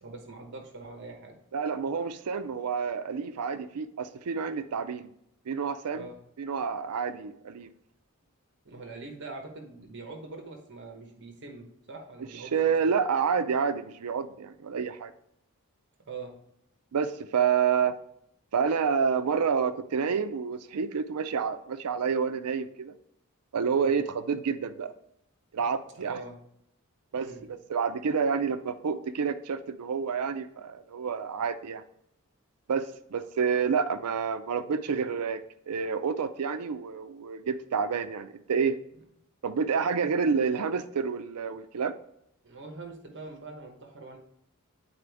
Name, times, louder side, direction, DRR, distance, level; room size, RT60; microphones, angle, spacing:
voice 1, 0.0-1.4 5.9-6.2 8.6-12.6 16.1-16.4 23.7-23.9 25.9-26.4 27.1-27.4 42.4-44.2, right 3 dB, 55° right, 3 dB, 1.1 m, -43 dB
voice 2, 1.5-5.1 5.5-6.1 6.4-7.7 12.5-15.1 16.9-18.0 18.5-22.9 23.5-24.9 25.5-26.2 27.1-31.8 32.7-35.4 35.7-38.7 39.4-41.9, right 6 dB, 90° right, 11 dB, 0.5 m, -29 dB
9.7 x 4.2 x 3.4 m, 0.74 s
head